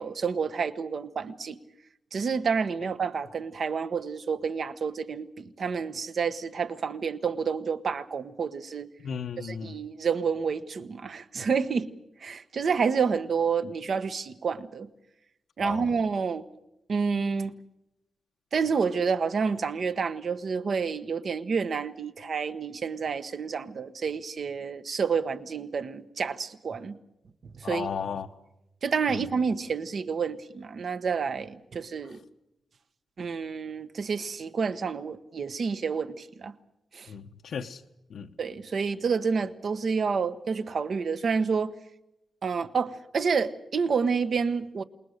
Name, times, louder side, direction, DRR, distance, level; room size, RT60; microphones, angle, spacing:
voice 1, 0.0-1.6 2.1-8.9 9.4-11.9 12.2-14.9 15.6-16.4 16.9-17.5 18.5-26.9 27.6-27.9 28.8-32.2 33.2-36.5 36.9-37.1 38.4-41.7 42.4-44.8, right 5 dB, 50° right, 1.1 m, -29 dB
voice 2, 9.0-9.8 15.6-15.9 27.6-28.3 29.1-29.2 37.1-37.8 38.1-38.3, left 6 dB, 75° left, 1.0 m, -35 dB
28.0 x 20.5 x 6.6 m
wide cardioid pair, 170°, 0 cm